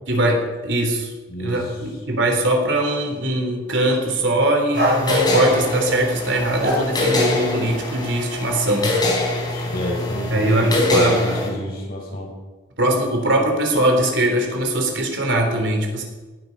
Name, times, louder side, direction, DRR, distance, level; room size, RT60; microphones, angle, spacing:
voice 1, 0.1-1.1 1.4-9.0 10.3-11.4 12.8-16.0, right 1 dB, 80° right, 3 dB, 3.5 m, -21 dB
voice 2, 1.3-1.8 9.4-12.3, left 1 dB, 55° left, -4 dB, 6.7 m, -30 dB
sound 1, 3.2-3.3 4.8-6.0 6.6-7.5, equal, 60° right, 4.2 m, -24 dB
sound 2, 4.7-11.5, left 2 dB, 25° left, 3.7 m, -24 dB
18.5 x 12.5 x 5.4 m, 1.3 s
head